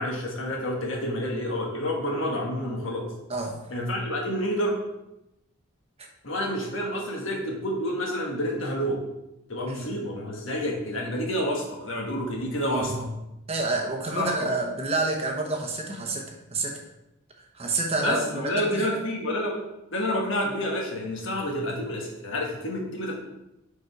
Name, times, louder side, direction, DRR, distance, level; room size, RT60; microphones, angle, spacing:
voice 1, 0.0-3.1 3.7-4.8 6.2-9.0 9.5-12.9 14.1-14.5 18.0-19.6 19.9-23.1, equal, 65° left, -1 dB, 1.5 m, -29 dB
voice 2, 12.7-13.1 13.5-16.8 17.5-18.9, right 2 dB, 30° right, 2 dB, 0.9 m, -29 dB
5.2 x 5.2 x 4.8 m, 0.91 s
head